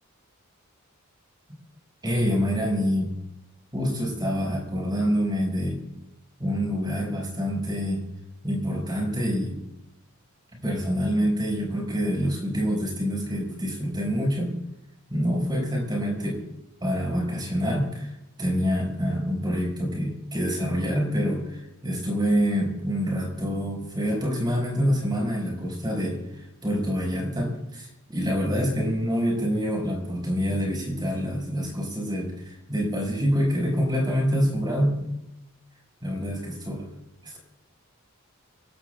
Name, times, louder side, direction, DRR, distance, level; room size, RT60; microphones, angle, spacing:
voice 1, 2.0-3.1 3.7-5.8 6.4-8.0 8.4-9.6 10.6-14.5 15.1-16.4 16.8-18.1 18.4-35.1 36.0-36.9 37.2-37.4, equal, 20° right, -1 dB, 5.1 m, -26 dB
25.0 x 16.5 x 2.3 m, 0.92 s
head